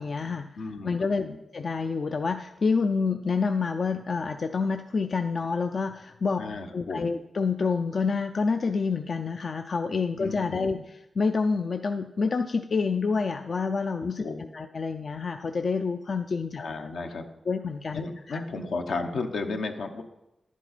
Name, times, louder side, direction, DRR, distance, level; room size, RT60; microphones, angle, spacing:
voice 1, 0.0-1.2 1.5-6.4 6.7-14.3 14.5-16.6 17.5-18.0 18.3-18.4, left 4 dB, 60° left, 7 dB, 0.4 m, -28 dB
voice 2, 0.6-1.4 6.4-7.1 10.2-10.8 14.2-14.5 16.6-17.2 17.9-20.0, left 3 dB, 85° left, 4 dB, 0.9 m, -34 dB
11.0 x 7.3 x 4.1 m, 0.92 s
cardioid pair, 60°, 0 cm